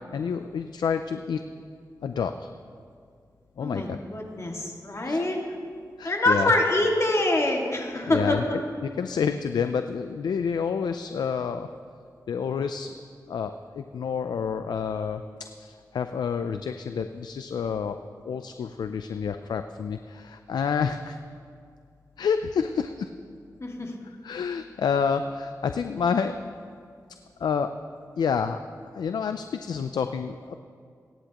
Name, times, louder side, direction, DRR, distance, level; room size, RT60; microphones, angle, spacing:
voice 1, 0.1-1.4 2.0-2.5 3.6-4.0 5.0-5.2 6.0-6.5 8.1-8.4 9.0-11.7 12.3-13.0 13.3-15.2 15.6-18.0 18.3-21.2 22.2-23.1 24.2-26.4 27.4-27.7 28.2-28.6 28.9-30.5, left 6 dB, 90° left, 8 dB, 0.4 m, -28 dB
voice 2, 3.6-5.4 6.0-8.6 23.6-23.9, left 2 dB, 45° left, 0 dB, 2.0 m, -25 dB
23.0 x 10.0 x 3.0 m, 2.2 s
cardioid pair, 55°, 7 cm